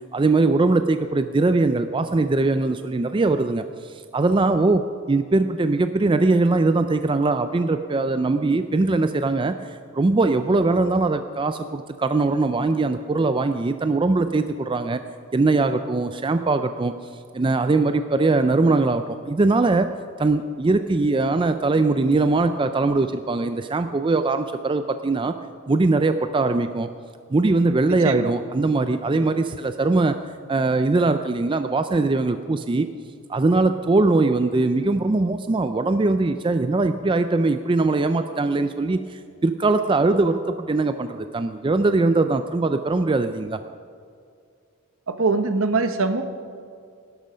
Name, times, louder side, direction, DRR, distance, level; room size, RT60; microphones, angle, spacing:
voice 1, 0.1-15.0 15.3-17.0 17.3-19.9 20.2-25.4 25.7-26.9 27.3-30.2 30.5-32.9 33.3-43.6, right 3 dB, 25° right, 9 dB, 0.4 m, -21 dB
voice 2, 45.1-46.2, right 3 dB, 65° right, 9 dB, 1.0 m, -22 dB
17.5 x 12.0 x 5.1 m, 2.3 s
head